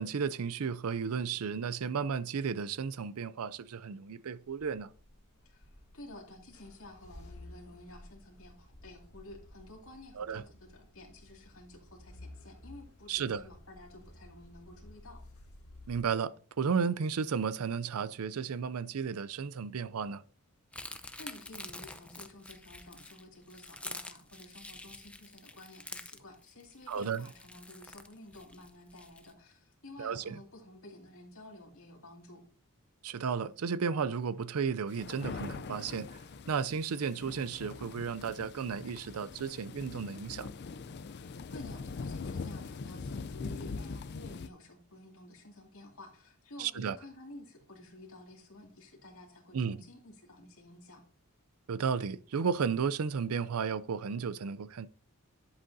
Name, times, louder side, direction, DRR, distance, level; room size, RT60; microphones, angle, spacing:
voice 1, 0.0-4.9 10.2-10.4 13.1-13.4 15.9-20.2 26.9-27.3 30.0-30.4 33.0-36.1 36.5-40.5 46.6-47.0 49.5-49.8 51.7-54.9, right 6 dB, 80° right, 0.5 m, -33 dB
sound 1, 4.4-16.0, left 1 dB, 85° left, 1.7 m, -54 dB
voice 2, 5.4-15.2 20.7-32.4 41.0-51.0, left 1 dB, 65° left, 2.4 m, -52 dB
sound 2, 20.7-29.3, left 2 dB, 5° left, 0.6 m, -47 dB
sound 3, 34.9-44.5, left 4 dB, 50° left, 0.5 m, -42 dB
11.0 x 7.9 x 2.7 m
head